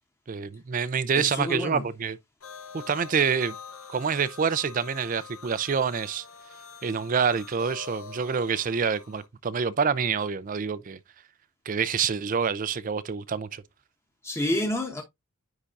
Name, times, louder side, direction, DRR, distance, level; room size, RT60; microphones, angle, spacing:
voice 1, 0.3-2.2 2.7-3.6 3.9-6.2 6.8-11.0 11.7-13.6, right 6 dB, 40° right, 0.4 m, -27 dB
voice 2, 1.2-1.8 14.2-15.0, left 1 dB, 15° left, 1.0 m, -28 dB
sound 1, 2.4-9.3, left 6 dB, 75° left, 0.9 m, -45 dB
9.8 x 3.7 x 2.6 m
head